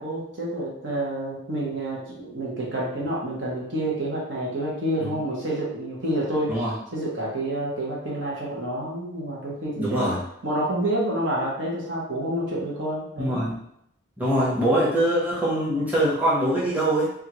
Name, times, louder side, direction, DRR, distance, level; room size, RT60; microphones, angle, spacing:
voice 1, 0.0-6.5 6.9-10.1 10.4-13.4, right 1 dB, 65° right, -4 dB, 1.0 m, -28 dB
voice 2, 9.8-10.2 13.2-13.6 14.2-17.1, right 1 dB, 10° right, -7 dB, 0.8 m, -23 dB
3.5 x 2.4 x 2.9 m, 0.74 s
head